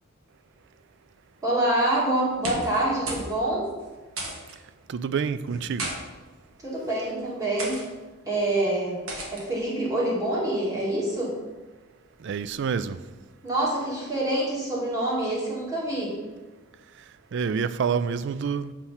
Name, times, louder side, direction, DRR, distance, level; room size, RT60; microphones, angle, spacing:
voice 1, 1.4-3.7 6.6-7.8 8.3-9.0 9.3-11.3 13.4-16.1, right 1 dB, 15° right, 2.2 m, -26 dB
sound 1, 2.3-2.8 3.1-3.3 3.6-3.7 4.2-4.6 5.5-6.0 6.7-7.0 7.6-7.8 9.1-9.4, right 2 dB, 75° right, 1.6 m, -33 dB
voice 2, 4.9-5.9 12.2-13.0 17.3-18.7, right 6 dB, 55° right, 0.3 m, -27 dB
8.0 x 4.3 x 5.7 m
head